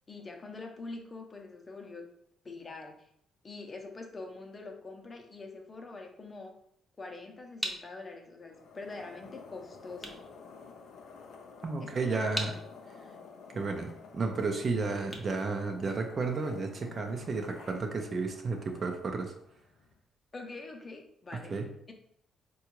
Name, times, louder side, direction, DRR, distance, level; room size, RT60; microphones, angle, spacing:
voice 1, 0.1-2.1 2.4-3.1 3.4-6.5 7.0-10.2 11.8-12.6 12.9-13.2 20.3-21.6, left 3 dB, 30° left, 3 dB, 0.6 m, -45 dB
sound 1, 7.6-16.4, equal, 5° right, 0.6 m, -44 dB
sound 2, 8.4-20.0, left 5 dB, 75° left, 0.5 m, -51 dB
voice 2, 11.6-12.5 13.5-19.3 21.3-21.7, right 4 dB, 45° right, 5 dB, 0.5 m, -32 dB
3.7 x 2.3 x 2.9 m, 0.71 s
cardioid pair, 80°, 0 cm